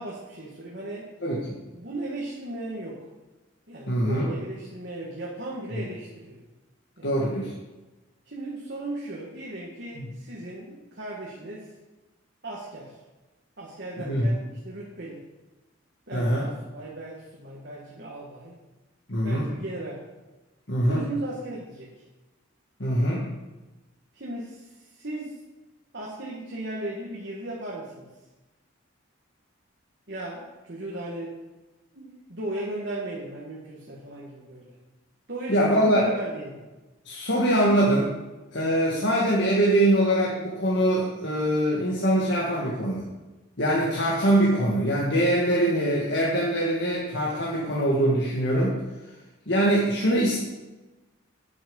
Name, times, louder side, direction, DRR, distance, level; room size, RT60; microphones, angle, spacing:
voice 1, 0.0-1.1 1.7-3.1 3.7-6.4 7.0-7.1 8.3-11.7 12.4-13.0 13.6-15.2 16.1-18.6 19.2-20.0 20.9-22.0 24.1-25.4 25.9-28.1 30.1-31.4 31.9-34.8 35.3-36.6, right 1 dB, 55° right, -4 dB, 1.9 m, -36 dB
voice 2, 1.2-1.5 3.9-4.3 5.8-5.9 7.0-7.5 10.0-10.1 14.0-14.3 16.1-16.5 19.1-19.5 20.7-21.0 22.8-23.3 35.5-36.1 37.1-38.1 38.5-43.0 43.6-48.7 49.5-50.4, right 1 dB, 60° left, -5 dB, 1.8 m, -23 dB
9.5 x 8.8 x 5.4 m, 1.1 s
head